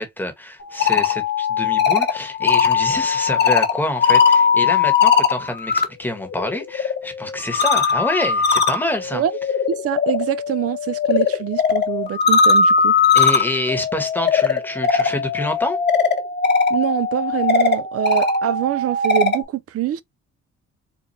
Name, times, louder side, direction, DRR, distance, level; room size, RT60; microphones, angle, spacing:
voice 1, 0.0-9.2 13.1-15.8, left 1 dB, 5° left, 1.2 m, -26 dB
sound 1, 0.6-5.9 6.2-19.4, left 5 dB, 35° left, 1.0 m, -19 dB
voice 2, 9.7-12.9 16.7-20.0, right 11 dB, 50° right, 0.5 m, -24 dB
4.1 x 2.2 x 3.1 m
cardioid pair, 90°, 30 cm